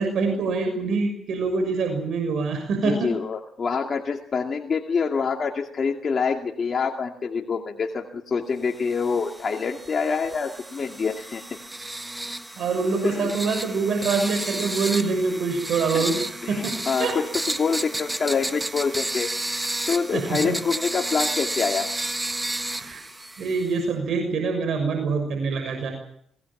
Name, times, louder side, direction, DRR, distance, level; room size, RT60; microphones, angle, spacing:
voice 1, 0.0-3.1 12.6-16.7 17.0-17.1 20.1-20.6 22.8-23.0 23.4-25.9, right 4 dB, 65° right, 5 dB, 6.6 m, -25 dB
voice 2, 2.8-11.6 13.0-13.3 15.9-16.1 16.4-19.6 19.9-21.9, left 5 dB, 45° left, 2 dB, 2.4 m, -26 dB
sound 1, 8.9-23.8, right 1 dB, 15° right, 1.5 m, -32 dB
26.0 x 19.0 x 7.3 m, 0.68 s
cardioid pair, 90°, 0 cm